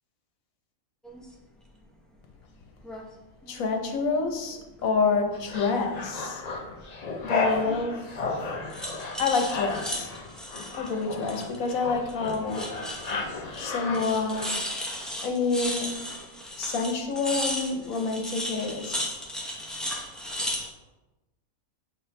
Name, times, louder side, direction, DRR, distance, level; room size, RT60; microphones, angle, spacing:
sound 1, 1.0-1.3 2.7-3.0 3.4-4.3 4.8-5.7 7.4-7.9 8.7-11.8 12.1-13.2 13.5-13.7 13.9-20.7, equal, ahead, 0.5 m, -35 dB
voice 1, 3.5-6.4 7.2-8.2 9.2-10.1 10.7-12.7 13.6-14.5 15.2-16.0 16.6-19.1, left 4 dB, 75° left, 4 dB, 1.3 m, -28 dB
sound 2, 5.3-14.5, left 3 dB, 45° left, 0.5 m, -34 dB
8.1 x 4.2 x 3.3 m, 1.0 s
omnidirectional pair, 1.4 m